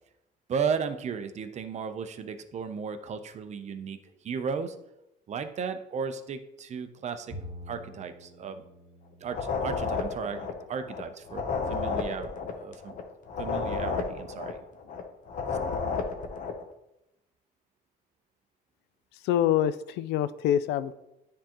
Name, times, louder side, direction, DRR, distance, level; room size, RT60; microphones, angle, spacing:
voice 1, 0.5-4.0 4.2-4.7 5.3-7.3 7.7-8.6 9.2-12.9 13.4-14.6, right 6 dB, 45° right, 9 dB, 0.6 m, -35 dB
Bowed string instrument, 7.3-10.7, left 1 dB, 5° left, 2.1 m, -47 dB
sound 1, 9.3-16.6, left 5 dB, 50° left, 0.9 m, -32 dB
voice 2, 19.2-20.9, left 11 dB, 90° left, 15 dB, 0.4 m, -25 dB
9.8 x 3.7 x 3.0 m, 0.88 s
cardioid pair, 110°, 17 cm